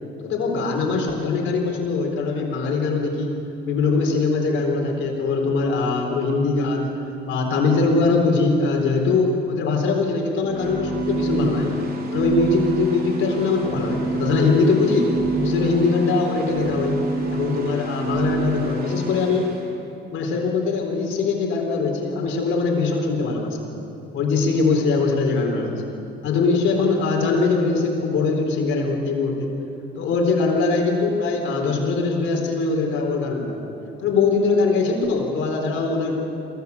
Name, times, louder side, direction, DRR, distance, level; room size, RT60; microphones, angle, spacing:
voice 1, 0.2-3.4 3.6-6.9 7.2-11.7 12.1-15.1 15.4-17.0 17.3-19.8 20.1-23.6 24.1-25.9 26.2-29.5 30.0-33.6 34.0-36.3, left 3 dB, 85° left, 1 dB, 4.1 m, -22 dB
sound 1, 10.4-19.5, right 1 dB, 50° right, 3.6 m, -27 dB
22.5 x 16.5 x 8.3 m, 2.8 s
cardioid pair, 90°, 20 cm